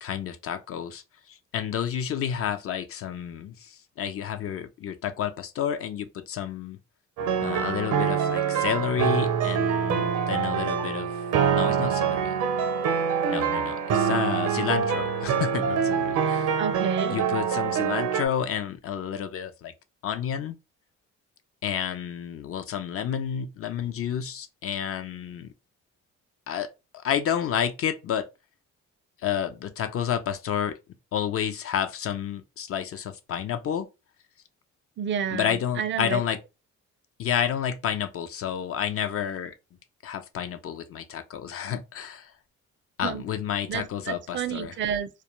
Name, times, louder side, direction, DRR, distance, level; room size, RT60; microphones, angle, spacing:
voice 1, 0.0-6.8 7.4-11.1 11.5-12.3 13.3-16.6 17.1-19.7 20.0-20.5 21.6-25.5 26.5-28.3 29.2-30.8 31.1-33.9 35.3-36.4 37.2-39.5 40.0-42.3 43.0-44.7, left 9 dB, 50° left, 0.4 m, -30 dB
sound 1, 7.2-18.3, right 7 dB, 80° right, 0.6 m, -25 dB
voice 2, 16.6-17.2 35.0-36.2 43.0-43.2 43.7-45.1, right 8 dB, 40° right, 0.4 m, -30 dB
2.2 x 2.2 x 2.9 m
cardioid pair, 90°, 30 cm